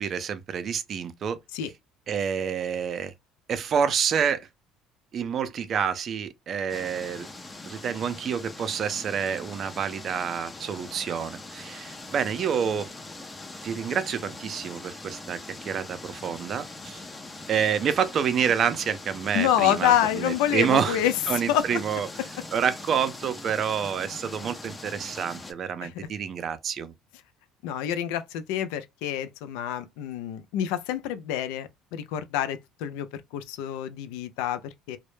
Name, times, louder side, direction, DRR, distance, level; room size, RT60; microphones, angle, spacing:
voice 1, 0.0-1.4 2.1-3.1 3.5-4.5 5.1-7.3 7.6-12.9 13.6-15.4 15.7-17.0 17.5-21.0 21.3-22.1 22.5-26.9, right 7 dB, 45° right, 0.5 m, -28 dB
sound 1, 6.7-25.5, left 2 dB, 15° left, 0.6 m, -42 dB
voice 2, 19.3-21.8 25.8-26.1 27.6-35.0, left 11 dB, 85° left, 0.4 m, -27 dB
2.1 x 2.0 x 3.0 m
cardioid pair, 105°, 0 cm